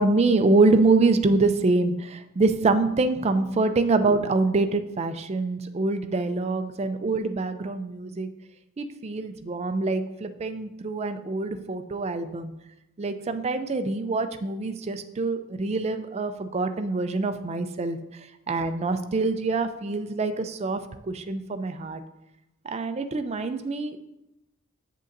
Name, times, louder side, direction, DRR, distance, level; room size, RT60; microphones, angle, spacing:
voice 1, 0.0-8.3 8.8-12.5 13.0-18.0 18.5-20.8 21.1-22.0 22.6-24.0, right 3 dB, 30° right, 9 dB, 0.4 m, -25 dB
8.4 x 6.6 x 2.6 m, 0.90 s
head